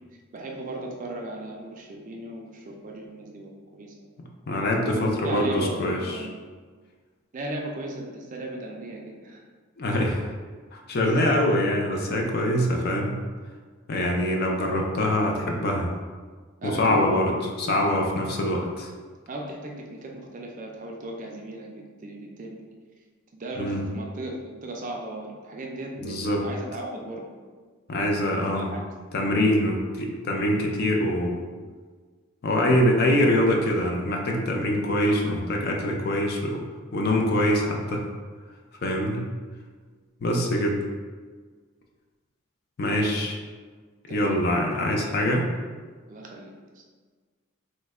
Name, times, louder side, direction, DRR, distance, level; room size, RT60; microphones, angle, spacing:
voice 1, 0.3-3.9 4.9-6.4 7.3-9.4 10.9-11.3 16.6-17.2 19.3-22.6 23.3-27.2 28.4-28.8 44.1-44.6 46.1-46.8, right 1 dB, 35° right, 1 dB, 0.3 m, -37 dB
voice 2, 4.5-6.2 9.8-10.3 10.7-13.2 13.9-15.9 16.6-18.9 23.6-23.8 26.0-26.5 27.9-28.7 29.1-31.4 32.4-36.6 36.9-38.0 38.8-39.2 40.2-40.8 42.8-43.4 44.1-45.5, left 1 dB, 45° left, 0 dB, 0.4 m, -24 dB
3.1 x 2.1 x 3.4 m, 1.5 s
head